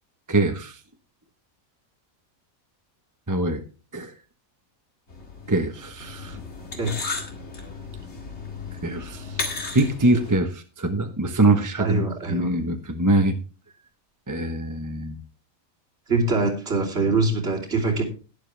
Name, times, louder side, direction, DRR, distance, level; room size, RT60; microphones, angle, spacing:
voice 1, 0.3-0.8 3.3-3.6 3.9-4.1 5.5-6.4 8.8-9.2 9.7-13.3 14.3-15.2, right 2 dB, 15° right, 6 dB, 0.9 m, -23 dB
sound 1, 5.1-10.4, left 4 dB, 50° left, 2.3 m, -35 dB
voice 2, 6.7-7.1 11.8-12.5 16.1-18.0, right 3 dB, 45° right, -2 dB, 3.4 m, -23 dB
12.0 x 11.0 x 3.3 m, 0.34 s
omnidirectional pair, 1.5 m